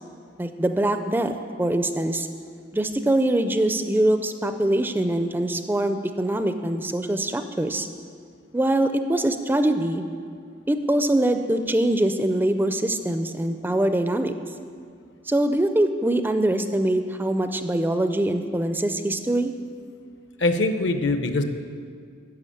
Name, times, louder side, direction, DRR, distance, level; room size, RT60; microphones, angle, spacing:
voice 1, 0.4-2.3 2.7-7.9 8.5-10.0 10.7-14.3 15.3-19.5, right 1 dB, 10° right, 8 dB, 0.4 m, -23 dB
voice 2, 20.4-21.4, left 2 dB, 65° left, 7 dB, 0.8 m, -22 dB
10.5 x 6.9 x 8.5 m, 2.2 s
head